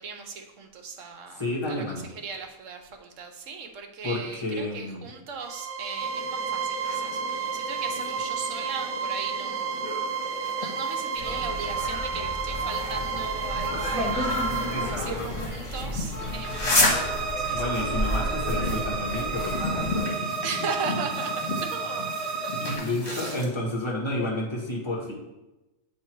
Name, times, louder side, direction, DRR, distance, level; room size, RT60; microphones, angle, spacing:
voice 1, 0.0-10.0 10.2-17.8 20.4-22.3 23.0-23.5, right 4 dB, 65° right, 5 dB, 1.1 m, -38 dB
voice 2, 1.3-2.1 4.0-5.1 14.7-15.3 17.5-20.2 22.6-25.1, left 1 dB, 20° left, -4 dB, 1.5 m, -31 dB
sound 1, 5.4-22.8, right 5 dB, 40° right, 0.4 m, -32 dB
sound 2, 6.0-23.5, left 2 dB, 50° left, 1.6 m, -33 dB
sound 3, 11.2-20.0, left 1 dB, 20° right, 1.9 m, -33 dB
8.0 x 3.1 x 4.5 m, 0.99 s
omnidirectional pair, 1.5 m